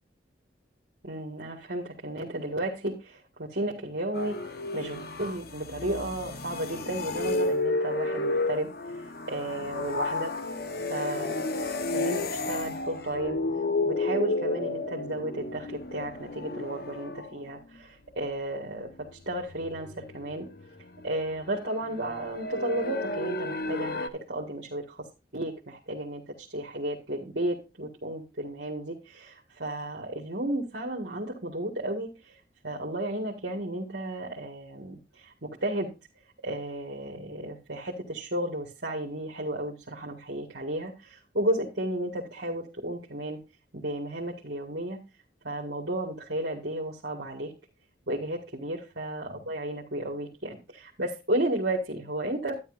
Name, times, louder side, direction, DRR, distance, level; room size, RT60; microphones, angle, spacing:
voice 1, 1.0-10.3 10.9-13.4 13.8-20.5 21.0-25.1 25.3-32.4 32.6-35.9 36.4-43.4 43.7-45.0 45.4-47.5 48.1-52.5, right 1 dB, 60° right, -1 dB, 1.9 m, -33 dB
sound 1, 4.1-17.4 19.5-21.3 21.6-24.1, left 2 dB, 55° left, 1.1 m, -32 dB
12.0 x 10.0 x 2.6 m, 0.28 s
head